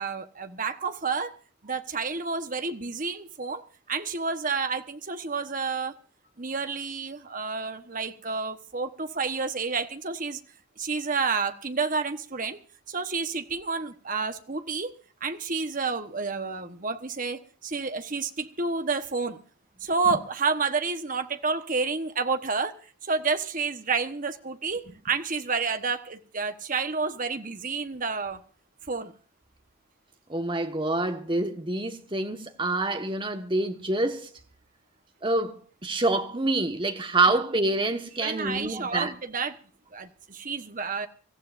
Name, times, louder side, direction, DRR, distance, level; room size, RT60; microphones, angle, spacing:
voice 1, 0.0-1.3 1.6-5.9 6.4-10.4 10.8-12.6 12.9-14.9 15.2-19.4 19.8-22.7 23.1-28.4 28.9-29.1 37.3-37.4 38.2-39.6 39.9-41.1, right 4 dB, 40° right, 1.2 m, -30 dB
voice 2, 30.3-34.3 35.2-39.1, right 2 dB, 25° right, 1.4 m, -27 dB
25.5 x 15.0 x 2.6 m
head